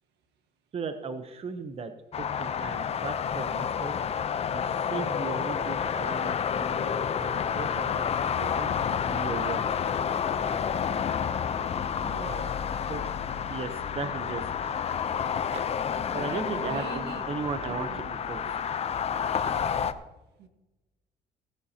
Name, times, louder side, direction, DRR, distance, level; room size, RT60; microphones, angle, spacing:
voice 1, 0.7-4.0 4.5-9.6 12.9-13.1 13.5-14.7 15.5-15.6 16.1-18.4, right 5 dB, 35° right, 8 dB, 0.9 m, -37 dB
sound 1, 2.1-19.9, left 7 dB, 40° left, 0.7 m, -30 dB
voice 2, 12.0-12.8 16.1-17.3 17.7-18.5 20.4-20.5, right 5 dB, 80° right, 6 dB, 1.6 m, -42 dB
17.5 x 11.0 x 2.9 m, 1.1 s
cardioid pair, 110°, 17 cm